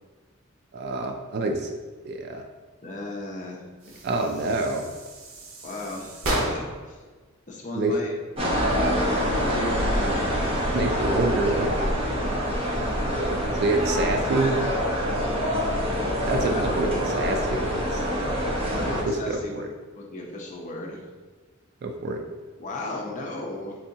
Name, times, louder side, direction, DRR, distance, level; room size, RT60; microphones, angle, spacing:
voice 1, 0.7-1.7 2.1-2.4 4.0-4.8 7.7-8.0 10.7-11.7 13.6-14.6 16.3-18.0 19.1-19.7 21.8-22.2, right 2 dB, 55° right, 3 dB, 0.3 m, -27 dB
voice 2, 2.8-3.6 5.6-7.0 7.5-8.1 9.2-10.7 16.4-16.9 18.4-19.7 19.9-21.0 22.6-23.8, left 2 dB, 40° left, -1 dB, 0.6 m, -35 dB
sound 1, 3.8-6.9, right 1 dB, 85° right, 0.7 m, -33 dB
sound 2, 8.4-19.0, equal, 30° right, 0.8 m, -25 dB
4.5 x 2.7 x 2.7 m, 1.4 s
head